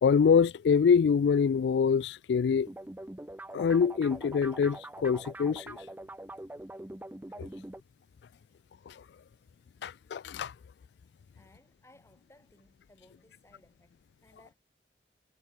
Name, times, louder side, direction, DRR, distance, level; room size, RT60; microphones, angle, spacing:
voice 1, 0.0-2.7 3.5-5.8 7.4-7.5 8.9-9.0 9.8-10.5, left 6 dB, 70° left, 0.3 m, -25 dB
sound 1, 2.7-7.8, right 1 dB, 10° right, 0.5 m, -44 dB
voice 2, 11.3-14.6, left 1 dB, 15° left, 6.1 m, -62 dB
head